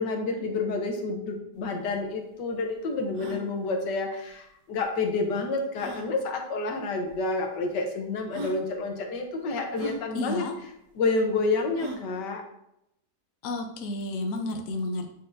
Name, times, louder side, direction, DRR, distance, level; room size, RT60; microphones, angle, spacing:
voice 1, 0.0-10.4 10.9-12.4, left 3 dB, 80° left, 3 dB, 1.5 m, -29 dB
sound 1, 1.6-1.7 1.8-1.9 2.5-2.6 3.1-3.4 4.8-4.9 5.7-6.1 7.1-7.2 7.9-8.0 8.3-8.6 9.7-10.0 11.8-12.1, right 1 dB, 70° right, 1.5 m, -38 dB
voice 2, 10.1-10.6 13.4-15.1, left 2 dB, 60° left, 3 dB, 1.0 m, -31 dB
8.3 x 4.3 x 2.6 m, 0.80 s
omnidirectional pair, 1.8 m